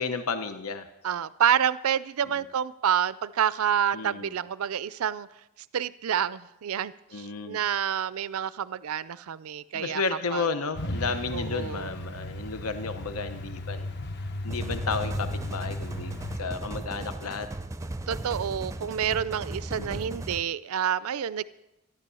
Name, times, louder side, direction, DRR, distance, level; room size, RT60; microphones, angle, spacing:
voice 1, 0.0-0.9 3.9-4.3 7.1-7.6 9.7-13.9 14.4-16.1 16.4-17.5 19.8-20.0, left 4 dB, 85° left, 9 dB, 0.9 m, -32 dB
voice 2, 1.0-5.3 5.7-10.0 10.3-10.5 11.3-11.9 18.1-21.4, right 8 dB, 80° right, 17 dB, 0.4 m, -28 dB
Truck, 10.7-16.4, left 1 dB, 50° left, 1.0 m, -35 dB
sound 1, 14.5-20.4, right 2 dB, 15° right, 0.5 m, -37 dB
14.0 x 11.0 x 6.9 m, 0.93 s
head